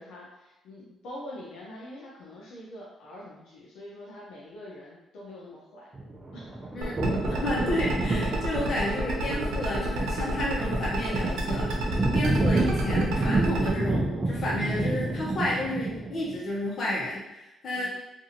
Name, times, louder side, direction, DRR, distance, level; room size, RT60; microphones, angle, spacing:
voice 1, 0.0-5.9 6.3-6.5 17.7-17.9, left 1 dB, 85° left, -5 dB, 0.6 m, -44 dB
sound 1, 5.9-16.3, right 2 dB, 30° right, 0.5 m, -29 dB
voice 2, 6.7-11.9 12.1-17.9, left 1 dB, 55° left, -5 dB, 1.0 m, -31 dB
sound 2, 6.8-13.7, right 2 dB, 85° right, 0.5 m, -32 dB
2.6 x 2.5 x 2.8 m, 0.95 s
cardioid pair, 90°, 0 cm